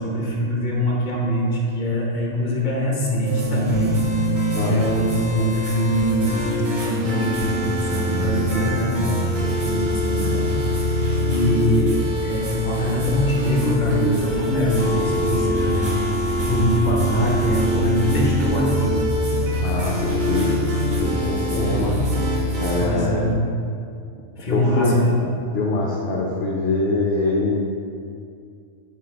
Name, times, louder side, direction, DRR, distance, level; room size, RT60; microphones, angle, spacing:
voice 1, 0.0-4.0 4.6-6.4 6.8-12.0 12.2-19.0 21.5-22.0 22.8-23.4 24.4-25.3, equal, 35° left, -2 dB, 1.1 m, -23 dB
sound 1, 3.2-22.9, equal, 40° right, 0.8 m, -23 dB
voice 2, 19.6-20.5 20.9-21.9 22.6-23.3 24.5-25.0 25.5-27.6, left 3 dB, 60° left, -3 dB, 0.8 m, -23 dB
9.0 x 3.4 x 3.3 m, 2.3 s
omnidirectional pair, 1.4 m